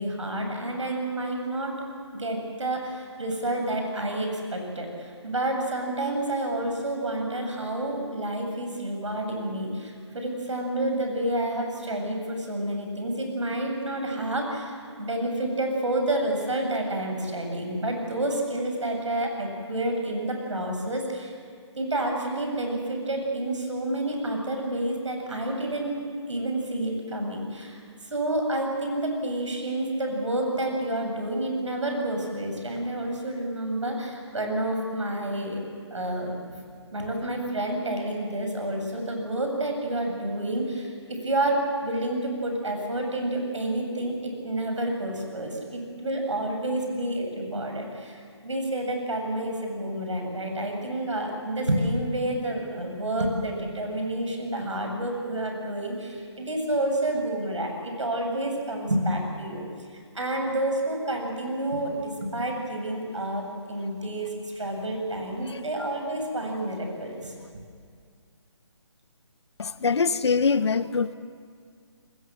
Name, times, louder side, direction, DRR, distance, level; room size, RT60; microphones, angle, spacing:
voice 1, 0.0-1.8 2.1-21.3 21.8-26.0 26.3-27.8 28.1-35.6 35.9-36.6 36.9-48.2 48.4-59.6 59.9-67.3, right 1 dB, 85° right, 3 dB, 7.7 m, -29 dB
voice 2, 69.6-71.2, left 5 dB, 65° left, 13 dB, 1.1 m, -24 dB
28.5 x 20.5 x 7.6 m, 2.1 s
hypercardioid pair, 165°, 15 cm